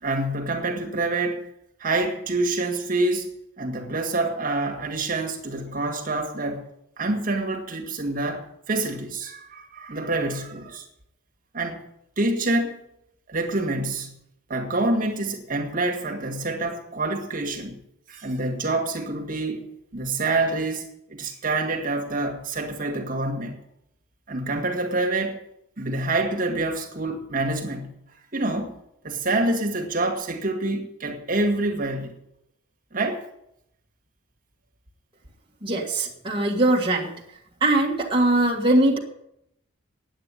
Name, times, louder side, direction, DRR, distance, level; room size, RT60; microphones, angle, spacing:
voice 1, 0.0-1.5 1.8-3.3 3.6-6.7 7.0-10.9 11.5-11.8 12.2-12.8 13.3-14.1 14.5-17.8 18.1-19.7 19.9-23.6 24.3-25.4 25.8-27.9 28.3-28.8 29.0-32.2 32.9-33.2, right 2 dB, 40° right, 4 dB, 1.9 m, -27 dB
voice 2, 35.6-37.1 37.6-39.0, right 1 dB, 25° right, -3 dB, 1.7 m, -21 dB
9.9 x 8.7 x 9.9 m, 0.79 s
head